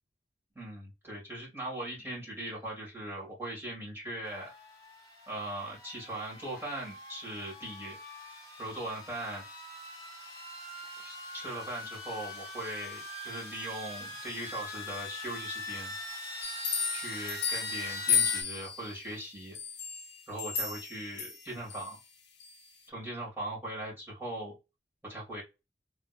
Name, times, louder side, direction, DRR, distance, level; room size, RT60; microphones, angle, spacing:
voice 1, 0.5-4.5 5.3-8.0 8.6-9.4 11.0-15.9 16.9-19.6 20.3-22.0 22.9-24.5 25.0-25.4, right 1 dB, 15° right, -5 dB, 1.6 m, -40 dB
sound 1, 4.2-18.4, left 1 dB, 20° left, 1.5 m, -43 dB
sound 2, 16.4-19.0 19.5-21.9 22.4-22.5, left 7 dB, 85° left, 0.7 m, -33 dB
3.6 x 2.8 x 2.3 m, 0.25 s
head